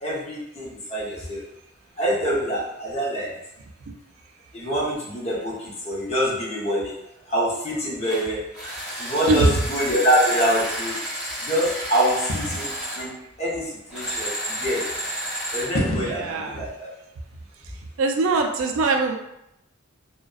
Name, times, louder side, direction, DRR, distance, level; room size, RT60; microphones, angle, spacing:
voice 1, 0.0-1.4 2.0-3.3 4.5-6.9 7.3-8.4 9.0-11.0 11.4-14.9 15.5-16.9, equal, 30° left, -5 dB, 0.7 m, -25 dB
sound 1, 8.0-8.2 8.5-13.1 13.9-15.7, right 1 dB, 5° right, 0.8 m, -31 dB
sound 2, 9.3-9.6 12.3-12.8 13.8-13.9 15.2-15.3 15.6-16.3, left 1 dB, 75° left, 0.6 m, -28 dB
voice 2, 9.3-9.6 16.0-16.7 18.0-19.2, right 3 dB, 75° right, 3 dB, 0.3 m, -22 dB
2.5 x 2.1 x 2.3 m, 0.83 s
head